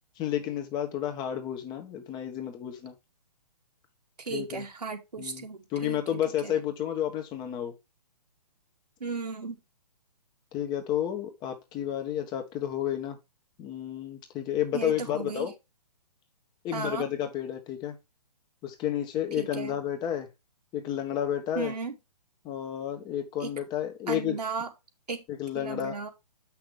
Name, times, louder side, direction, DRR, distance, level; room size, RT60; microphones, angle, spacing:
voice 1, 0.2-2.9 4.3-4.6 5.2-5.4 5.7-7.7 10.5-13.2 13.6-15.5 16.6-18.0 18.6-20.3 20.7-21.7 22.4-24.4 25.3-25.9, left 10 dB, 20° left, 1.4 m, -31 dB
voice 2, 4.2-6.0 6.4-6.5 9.0-9.6 14.7-15.5 16.7-17.1 19.4-19.8 21.6-21.9 23.4-23.5 24.1-24.7 25.1-25.2 25.5-26.1, right 4 dB, 75° right, 2.3 m, -35 dB
7.8 x 6.0 x 3.4 m
figure-of-eight pair, 135°, 21 cm